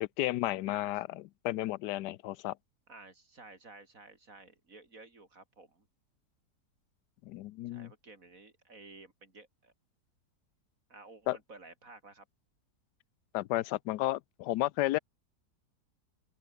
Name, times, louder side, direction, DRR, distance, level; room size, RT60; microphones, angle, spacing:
voice 1, 0.0-2.5 7.3-7.9 11.3-11.4 13.3-15.0, left 16 dB, 90° left, 1.2 m, -32 dB
voice 2, 2.9-5.9 7.7-9.7 10.9-12.3, right 3 dB, 55° right, 4.3 m, -53 dB
open air
omnidirectional pair, 1.7 m